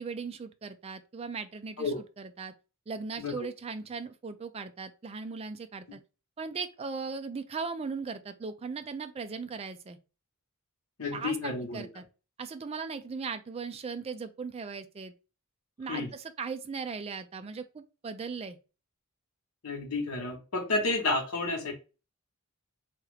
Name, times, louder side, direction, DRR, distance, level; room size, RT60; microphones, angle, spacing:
voice 1, 0.0-2.5 2.9-6.0 6.4-10.0 11.1-12.0 12.4-15.1 15.8-18.6, right 5 dB, 25° right, 0.3 m, -38 dB
voice 2, 3.2-3.5 11.0-11.9 15.9-16.1 19.6-21.7, left 3 dB, 85° left, 1.0 m, -31 dB
2.9 x 2.3 x 3.2 m
head